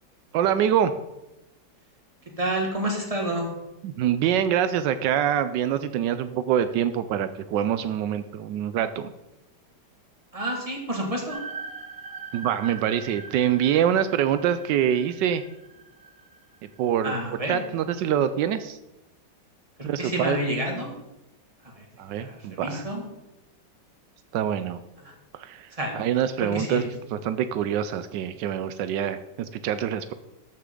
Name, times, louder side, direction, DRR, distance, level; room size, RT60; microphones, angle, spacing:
voice 1, 0.3-0.9 3.8-9.1 12.3-15.4 16.8-17.1 17.5-18.8 19.8-20.4 22.0-22.8 24.3-24.8 25.4-25.7 25.9-30.1, right 9 dB, 80° right, 12 dB, 1.2 m, -25 dB
voice 2, 2.4-3.5 10.3-11.4 17.0-17.6 19.8-20.9 21.6-21.9 22.1-23.0 25.7-26.0 26.4-26.9, right 1 dB, 20° right, 0 dB, 2.0 m, -29 dB
sound 1, 11.3-17.5, right 4 dB, 65° right, 0.3 m, -42 dB
13.5 x 6.7 x 3.8 m, 0.95 s
omnidirectional pair, 1.9 m